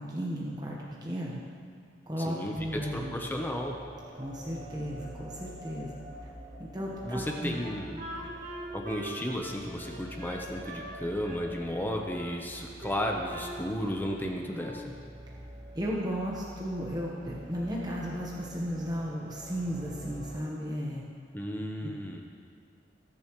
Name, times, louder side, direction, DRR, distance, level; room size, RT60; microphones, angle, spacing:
voice 1, 0.0-1.4 2.1-3.1 4.2-5.9 6.6-7.6 15.7-21.0, equal, 20° right, -4 dB, 1.2 m, -34 dB
voice 2, 2.2-3.8 7.0-8.0 8.7-14.8 21.3-22.2, equal, 10° left, 1 dB, 0.9 m, -34 dB
sound 1, 2.5-20.4, equal, 75° right, 3.1 m, -47 dB
Wind instrument woodwind instrument, 7.5-11.0 11.2-12.4 12.8-14.1 14.4-14.9, right 1 dB, 50° right, 2.3 m, -43 dB
19.5 x 7.0 x 3.1 m, 2.2 s
head